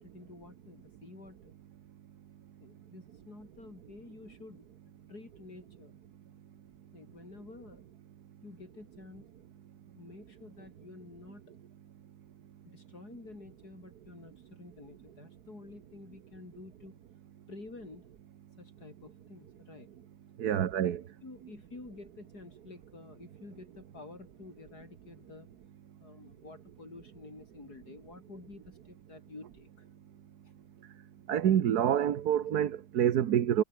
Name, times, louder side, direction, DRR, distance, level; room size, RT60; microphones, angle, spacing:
voice 1, 0.0-1.6 2.6-4.7 5.1-5.9 6.9-7.8 8.4-9.3 10.0-11.6 12.6-17.0 17.5-18.1 18.6-19.9 21.2-25.5 26.0-29.9 30.4-30.5, left 2 dB, 75° left, 5.7 m, -50 dB
voice 2, 20.4-21.0 31.3-33.6, right 10 dB, 75° right, 1.6 m, -27 dB
omnidirectional pair, 1.7 m